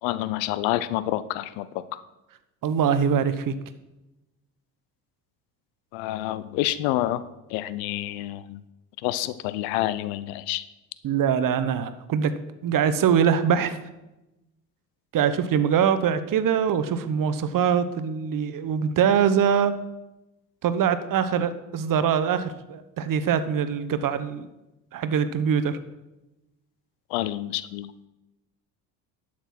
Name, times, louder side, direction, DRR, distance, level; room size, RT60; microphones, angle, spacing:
voice 1, 0.0-2.0 5.9-7.2 7.5-8.6 9.0-10.6 27.1-27.9, left 14 dB, 60° left, 15 dB, 0.7 m, -28 dB
voice 2, 2.6-3.5 11.0-12.3 12.6-13.8 15.1-19.8 20.6-24.5 24.9-25.8, right 7 dB, 40° right, 12 dB, 1.0 m, -23 dB
11.5 x 6.1 x 6.0 m, 0.98 s
figure-of-eight pair, 60°, 50 cm